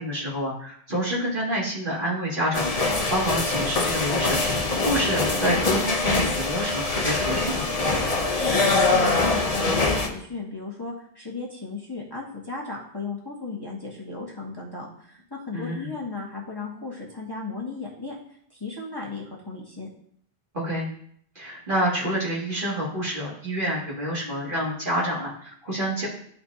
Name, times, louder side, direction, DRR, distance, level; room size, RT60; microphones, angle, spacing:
voice 1, 0.0-7.7 15.5-15.9 20.5-20.9 21.3-26.1, equal, 50° right, -6 dB, 2.6 m, -28 dB
sound 1, 2.5-10.1, left 3 dB, 35° left, 0.9 m, -23 dB
voice 2, 8.4-18.1 18.5-19.9, left 3 dB, 20° left, -5 dB, 1.4 m, -35 dB
12.5 x 4.3 x 2.8 m, 0.64 s
omnidirectional pair, 1.1 m